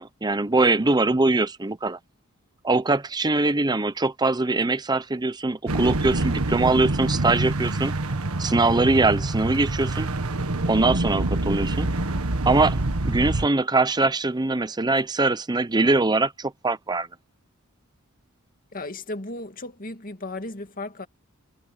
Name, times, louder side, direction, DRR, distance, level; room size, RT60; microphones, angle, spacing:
voice 1, 0.0-2.0 2.6-7.9 8.4-10.1 10.6-11.9 12.5-17.1, right 2 dB, 20° right, 0.7 m, -22 dB
sound 1, 5.7-13.5, right 2 dB, 85° right, 1.6 m, -26 dB
voice 2, 18.7-21.1, left 2 dB, 40° left, 2.2 m, -35 dB
head